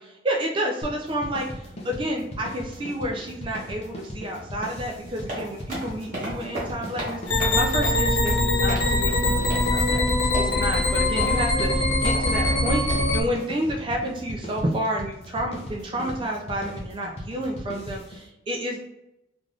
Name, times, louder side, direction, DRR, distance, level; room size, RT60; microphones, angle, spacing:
voice 1, 0.0-10.0 10.3-18.8, right 1 dB, 25° right, 0 dB, 0.4 m, -30 dB
sound 1, 0.8-18.3, equal, 35° left, 0.5 m, -38 dB
sound 2, 5.0-13.0, right 1 dB, 45° right, 1.1 m, -35 dB
sound 3, 7.3-13.2, left 2 dB, 75° left, 0.9 m, -22 dB
3.3 x 2.5 x 2.4 m, 0.88 s
head